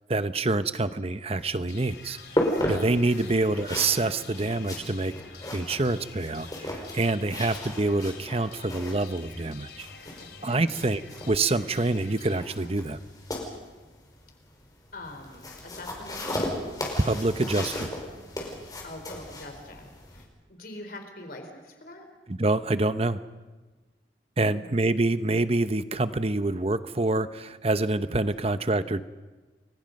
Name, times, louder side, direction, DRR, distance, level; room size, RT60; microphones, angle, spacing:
voice 1, 0.1-2.2 2.7-5.1 5.5-9.9 10.4-11.0 11.3-13.0 17.0-17.9 22.4-23.2 24.4-29.0, right 2 dB, 35° right, 12 dB, 0.9 m, -26 dB
sound 1, 1.4-20.2, left 1 dB, 20° left, 4.9 m, -36 dB
sound 2, 1.7-13.6, left 5 dB, 70° left, 3.1 m, -48 dB
voice 2, 14.9-16.4 18.8-22.0 24.4-24.7, left 1 dB, 55° left, 5 dB, 4.4 m, -44 dB
30.0 x 23.5 x 5.4 m, 1.3 s
head